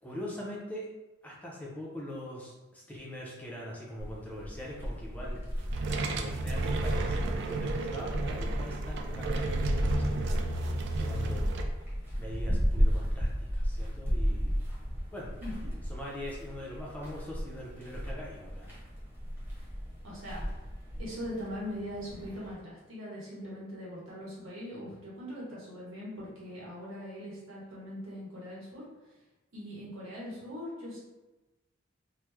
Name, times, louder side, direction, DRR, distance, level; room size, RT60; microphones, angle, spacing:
voice 1, 0.0-0.9 1.2-5.4 6.1-10.5 11.0-11.7 12.2-14.5 15.1-15.3 15.9-18.7, equal, 10° left, -4 dB, 0.4 m, -42 dB
sound 1, 4.0-22.5, equal, 10° right, 0.9 m, -34 dB
sound 2, 5.6-11.6, right 2 dB, 55° right, 0.3 m, -33 dB
voice 2, 15.4-15.7 20.0-20.5 21.0-28.8 29.5-31.0, equal, 80° right, -6 dB, 1.2 m, -41 dB
3.0 x 2.0 x 3.4 m, 1.1 s
head